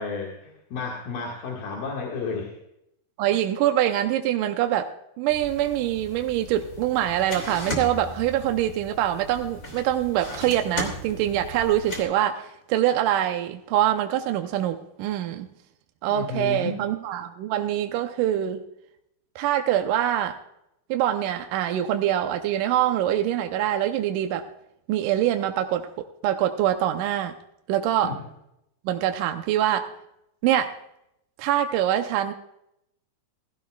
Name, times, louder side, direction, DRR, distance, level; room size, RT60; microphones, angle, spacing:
voice 1, 0.0-2.6 16.1-16.8 28.0-28.2, left 4 dB, 65° left, -2 dB, 3.4 m, -32 dB
voice 2, 3.2-15.5 16.0-18.6 19.4-20.4 20.9-24.5 24.9-25.9 26.2-27.3 27.7-28.1 28.9-29.9 30.4-30.8 31.4-32.3, right 11 dB, 75° right, 6 dB, 1.9 m, -24 dB
sound 1, 5.3-12.0, left 1 dB, 25° left, 2.8 m, -37 dB
17.0 x 16.0 x 2.3 m, 0.81 s
omnidirectional pair, 4.4 m